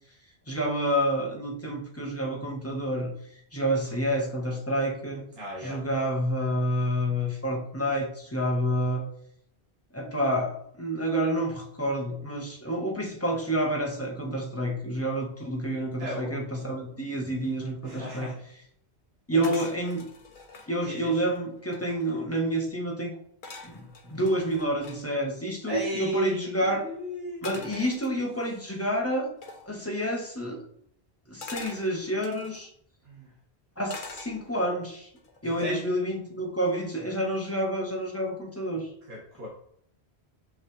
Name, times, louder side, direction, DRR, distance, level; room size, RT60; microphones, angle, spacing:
voice 1, 0.5-3.1 3.5-5.2 5.6-9.0 9.9-18.3 19.3-20.1 20.7-23.1 23.6-26.9 27.4-29.3 29.7-30.6 31.3-32.7 33.8-35.1 35.4-38.9, right 1 dB, 15° left, -1 dB, 1.5 m, -29 dB
voice 2, 5.3-5.8 16.0-16.5 17.8-18.4 19.3-19.6 20.8-21.2 25.7-27.5 33.1-33.3 35.4-35.8 39.1-39.5, equal, 65° right, -6 dB, 2.1 m, -35 dB
sound 1, 19.4-20.7 21.3-21.4 21.6-22.2 23.4-25.0 27.4-28.5 29.4-29.7 31.4-32.6 33.9-34.7 35.2-35.5, left 3 dB, 50° left, 1.1 m, -44 dB
6.7 x 5.5 x 3.4 m, 0.67 s
omnidirectional pair, 1.1 m